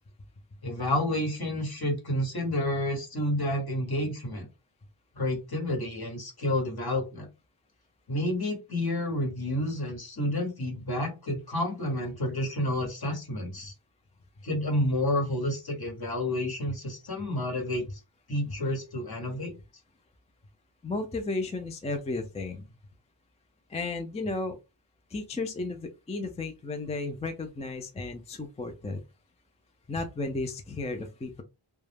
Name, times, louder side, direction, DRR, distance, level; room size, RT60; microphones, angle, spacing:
voice 1, 0.6-4.5 5.1-7.3 8.1-13.7 14.4-18.0 18.3-19.5, left 1 dB, 50° left, 1 dB, 1.2 m, -30 dB
voice 2, 20.8-22.7 23.7-24.6 25.1-29.0 29.9-31.4, left 3 dB, 15° left, 6 dB, 0.3 m, -34 dB
2.2 x 2.0 x 3.2 m, 0.27 s
wide cardioid pair, 80°, 48 cm